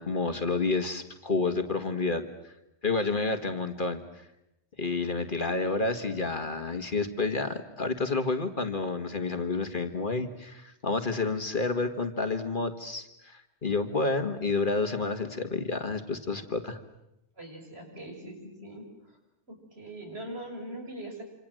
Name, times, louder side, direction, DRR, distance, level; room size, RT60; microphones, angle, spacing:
voice 1, 0.0-2.5 2.8-4.3 4.8-16.8, left 3 dB, 45° left, 7 dB, 1.8 m, -30 dB
voice 2, 17.4-19.2 19.5-21.2, right 1 dB, 60° right, 1 dB, 6.5 m, -42 dB
27.0 x 26.5 x 7.7 m, 0.86 s
omnidirectional pair, 1.2 m